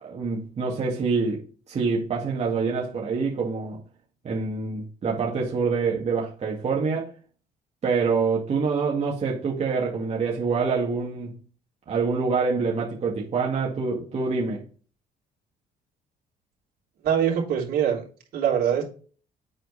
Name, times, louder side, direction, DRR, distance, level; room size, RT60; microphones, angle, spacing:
voice 1, 0.0-3.8 4.2-7.1 7.8-11.3 11.9-14.6, right 4 dB, 40° right, 2.1 m, -26 dB
voice 2, 17.0-18.0 18.3-18.8, right 8 dB, 70° right, 3.4 m, -23 dB
8.0 x 4.4 x 4.1 m
cardioid pair, 110°, 17 cm